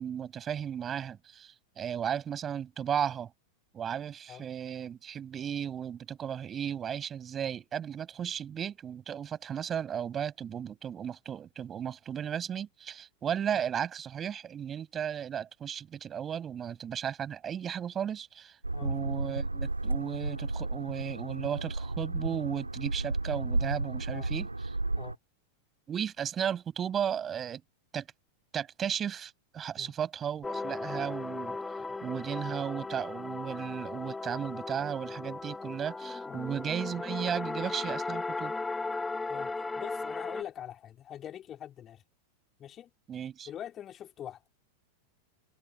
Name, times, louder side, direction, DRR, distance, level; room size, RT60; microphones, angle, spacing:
voice 1, 0.0-3.3 3.7-24.8 25.9-27.6 27.9-28.1 28.5-31.6 32.0-38.5 43.1-43.5, right 8 dB, 25° right, 7.0 m, -35 dB
sound 1, 18.6-25.2, right 2 dB, 85° right, 2.9 m, -33 dB
sound 2, 30.4-40.4, left 3 dB, 10° left, 2.5 m, -36 dB
voice 2, 39.3-42.0 42.6-42.9 43.5-44.4, left 10 dB, 30° left, 4.6 m, -43 dB
figure-of-eight pair, 90°, 0 cm